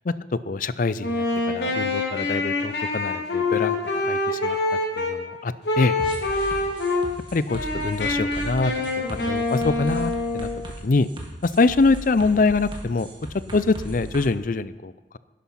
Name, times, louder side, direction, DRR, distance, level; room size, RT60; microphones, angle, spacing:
voice 1, 0.0-3.8 4.0-4.6 5.0-6.0 7.3-8.7 9.1-10.5 10.8-11.1 11.4-13.1 13.5-15.2, left 3 dB, 50° left, 16 dB, 0.5 m, -24 dB
Wind instrument woodwind instrument, 1.0-5.2 5.6-7.1 7.5-10.7, left 2 dB, 85° left, 2.9 m, -25 dB
sound 1, 6.0-14.3, right 1 dB, 30° right, 1.9 m, -37 dB
12.0 x 10.0 x 5.7 m, 1.1 s
head